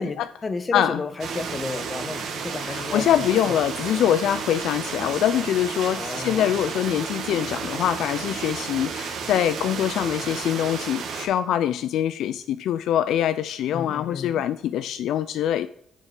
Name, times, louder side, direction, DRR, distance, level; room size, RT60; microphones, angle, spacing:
voice 1, 0.4-3.6 5.9-6.5 13.7-14.5, left 4 dB, 40° left, 11 dB, 1.2 m, -32 dB
sound 1, 1.2-11.3, right 6 dB, 70° right, 1.6 m, -32 dB
voice 2, 2.6-15.7, left 10 dB, 75° left, 13 dB, 0.3 m, -24 dB
6.5 x 6.5 x 6.6 m, 0.69 s
supercardioid pair, 55°, 0 cm